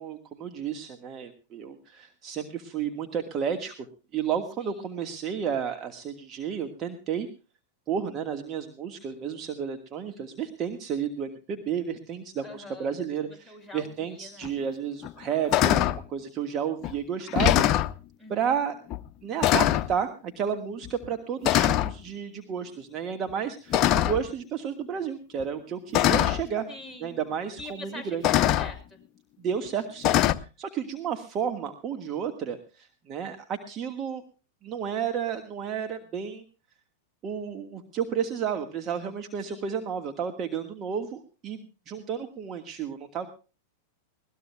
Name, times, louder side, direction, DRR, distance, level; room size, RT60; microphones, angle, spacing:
voice 1, 0.0-3.9 4.1-7.3 7.9-17.6 18.3-18.8 19.2-26.6 27.0-28.2 29.4-34.2 34.6-36.4 37.2-43.3, right 7 dB, 35° right, 7 dB, 1.5 m, -32 dB
voice 2, 12.4-12.9 13.3-14.5 18.2-18.6 26.7-27.2 27.6-29.0 39.5-39.7, left 2 dB, 5° right, 7 dB, 6.1 m, -44 dB
sound 1, 14.4-14.5 15.0-15.2 15.5-16.0 16.8-16.9 17.3-17.9 18.9-19.1 19.4-19.9 20.8-21.1 21.4-21.9 23.7-24.3 25.4-25.5 25.9-26.4 27.6-27.7 28.2-28.7 30.0-30.3, left 13 dB, 40° left, 0.8 m, -22 dB
21.0 x 18.5 x 2.2 m, 0.34 s
hypercardioid pair, 100°, 0 cm